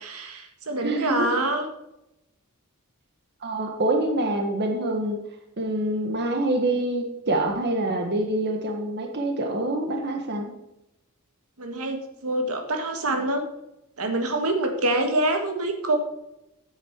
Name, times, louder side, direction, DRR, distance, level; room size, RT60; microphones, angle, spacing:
voice 1, 0.0-1.7 11.6-13.4 14.0-16.0, right 2 dB, 75° right, 5 dB, 1.6 m, -26 dB
voice 2, 0.8-1.3 3.4-5.2 5.6-10.5, right 1 dB, 50° right, 4 dB, 1.5 m, -26 dB
9.4 x 8.7 x 4.6 m, 0.88 s
head